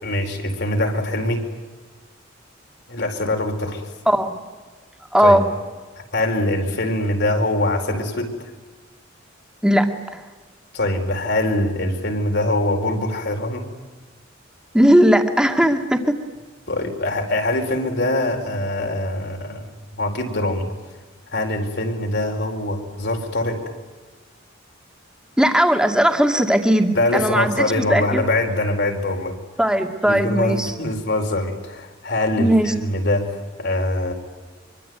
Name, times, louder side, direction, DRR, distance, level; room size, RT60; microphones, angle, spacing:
voice 1, 0.0-1.5 2.9-3.9 5.2-5.4 5.9-8.5 10.7-13.7 16.7-20.7 21.3-23.6 26.9-29.4 30.0-34.1, left 1 dB, 60° left, 4 dB, 4.6 m, -23 dB
voice 2, 5.1-5.5 9.6-10.2 14.7-16.1 25.4-28.2 29.6-30.7 32.4-32.7, equal, 5° right, 4 dB, 2.4 m, -18 dB
25.0 x 24.5 x 9.4 m, 1.3 s
head